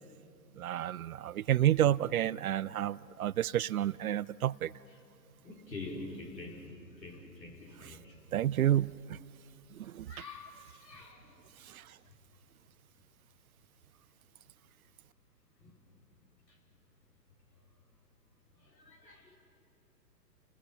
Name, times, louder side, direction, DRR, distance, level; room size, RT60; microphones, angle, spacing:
voice 1, 0.6-4.7 7.8-8.0 8.3-9.2 9.8-10.1 11.6-11.9, right 12 dB, 60° right, 0.5 m, -30 dB
voice 2, 5.4-6.7 7.0-8.1 10.1-11.4 15.6-15.8 18.7-19.4, left 2 dB, 80° left, 5.3 m, -46 dB
30.0 x 20.0 x 5.7 m
figure-of-eight pair, 125°, 50 cm